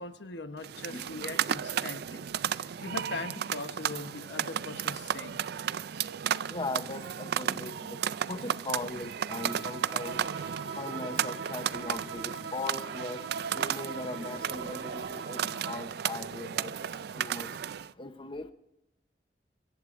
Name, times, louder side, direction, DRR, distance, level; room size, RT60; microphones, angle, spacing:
voice 1, 0.0-2.2 2.5-5.4, left 3 dB, 75° left, 9 dB, 1.0 m, -41 dB
sound 1, 0.6-17.9, right 9 dB, 65° right, 0.4 m, -34 dB
voice 2, 6.5-8.0 8.3-10.2 10.8-13.2 13.5-16.7 17.1-17.5 18.0-18.5, left 2 dB, 30° left, 8 dB, 0.8 m, -39 dB
Bowed string instrument, 9.3-15.9, right 5 dB, 90° right, 2.2 m, -41 dB
25.5 x 15.0 x 2.6 m, 0.85 s
head